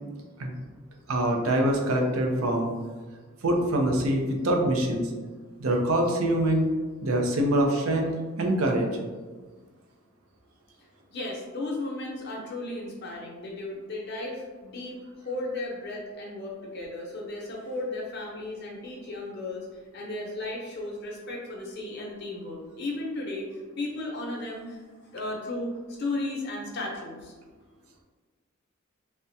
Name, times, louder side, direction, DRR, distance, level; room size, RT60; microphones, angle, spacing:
voice 1, 1.1-2.7 3.4-5.0 5.6-6.7 7.0-8.9, right 1 dB, 85° right, 2 dB, 0.5 m, -24 dB
voice 2, 11.1-19.7 19.9-23.5 23.8-24.8 25.1-25.7 26.0-27.3, left 2 dB, 50° left, -2 dB, 0.7 m, -35 dB
3.4 x 2.1 x 2.7 m, 1.4 s
head